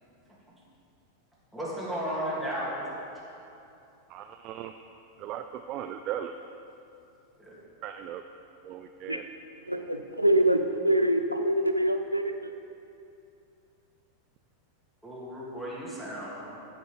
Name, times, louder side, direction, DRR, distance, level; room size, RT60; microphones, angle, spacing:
voice 1, 1.5-2.9 7.4-7.6 15.0-16.6, equal, ahead, -8 dB, 2.6 m, -34 dB
voice 2, 4.1-4.7 5.2-6.4 7.8-8.2 8.6-9.3, right 10 dB, 40° right, 7 dB, 0.4 m, -37 dB
voice 3, 9.7-12.5, right 1 dB, 90° right, 6 dB, 0.6 m, -25 dB
15.5 x 5.4 x 5.2 m, 2.7 s
figure-of-eight pair, 90°, 0 cm